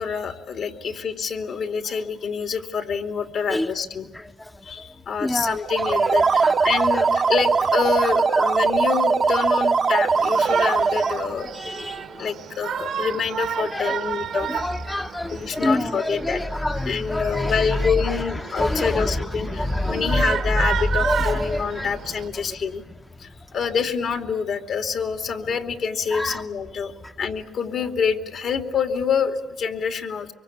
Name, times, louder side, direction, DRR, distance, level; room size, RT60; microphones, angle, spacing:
voice 1, 0.0-4.1 4.6-11.7 12.2-14.5 15.3-16.4 16.8-22.8 23.2-30.3, left 6 dB, 65° left, 5 dB, 2.7 m, -27 dB
voice 2, 5.2-5.6 5.9-6.0 6.4-7.1 8.3-8.5 11.4-12.3 13.7-14.0 14.3-18.2 18.5-20.7 21.0-21.9 26.1-26.4, left 1 dB, 10° left, 7 dB, 0.8 m, -26 dB
sound 1, 5.6-11.3, right 5 dB, 40° right, 0.8 m, -20 dB
Shout, 10.2-22.3, right 9 dB, 75° right, 1.4 m, -32 dB
25.0 x 24.0 x 8.6 m, 1.2 s
cardioid pair, 90°, 0 cm